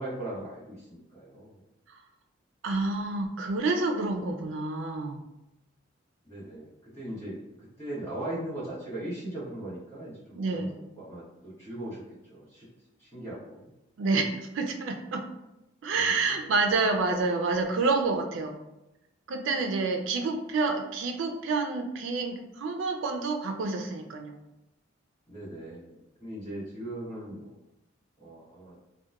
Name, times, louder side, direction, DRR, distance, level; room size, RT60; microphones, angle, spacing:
voice 1, 0.0-1.6 6.2-12.0 12.3-12.7 13.0-13.7 15.9-16.5 25.3-27.6 28.2-28.8, right 1 dB, 15° left, -9 dB, 1.1 m, -39 dB
voice 2, 2.6-5.2 10.4-10.7 14.0-15.2 15.8-18.6 19.3-24.4, right 3 dB, 80° right, 4 dB, 0.4 m, -28 dB
2.8 x 2.1 x 2.3 m, 0.92 s
head